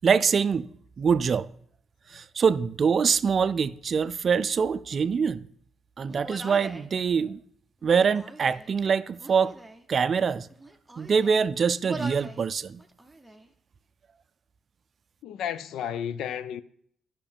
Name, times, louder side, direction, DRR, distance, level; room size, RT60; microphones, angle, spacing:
voice 1, 0.0-0.7 1.0-1.5 2.1-5.5 6.0-7.4 7.8-9.5 9.9-10.5 11.0-12.8, right 6 dB, 45° right, 0.4 m, -24 dB
Human voice, 6.1-6.9 7.8-8.7 9.2-9.8 10.5-11.5 11.8-12.4 12.8-13.5, right 2 dB, 5° right, 0.8 m, -42 dB
voice 2, 15.2-16.6, left 9 dB, 80° left, 0.4 m, -32 dB
11.5 x 5.8 x 3.5 m
cardioid pair, 90°, 0 cm